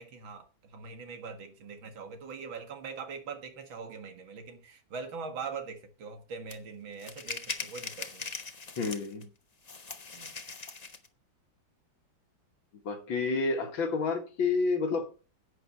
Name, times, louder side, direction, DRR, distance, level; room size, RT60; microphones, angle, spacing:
voice 1, 0.0-8.3 10.1-10.3, right 5 dB, 90° right, 2.5 m, -42 dB
sound 1, 6.5-6.6 7.0-9.2 9.6-11.1, left 4 dB, 30° left, 0.8 m, -40 dB
voice 2, 8.8-9.3 12.8-15.1, left 4 dB, 90° left, 2.5 m, -29 dB
11.0 x 8.5 x 4.3 m
omnidirectional pair, 2.1 m